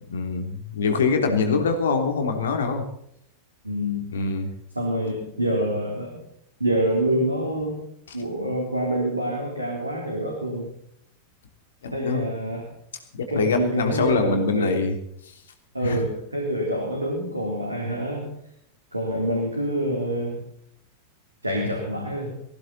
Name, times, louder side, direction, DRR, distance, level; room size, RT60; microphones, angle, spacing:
voice 1, 0.1-2.8 4.1-4.5 11.8-12.2 13.1-15.0 15.8-16.0, left 4 dB, 65° left, 6 dB, 3.1 m, -24 dB
voice 2, 1.3-1.6 3.6-4.3 4.8-6.2 6.6-7.9 8.1-10.7 11.9-12.7 13.3-14.8 15.7-18.4 18.9-20.5 21.4-22.4, right 1 dB, 85° right, -1 dB, 3.9 m, -26 dB
19.0 x 15.5 x 4.3 m, 0.72 s
figure-of-eight pair, 90°, 0 cm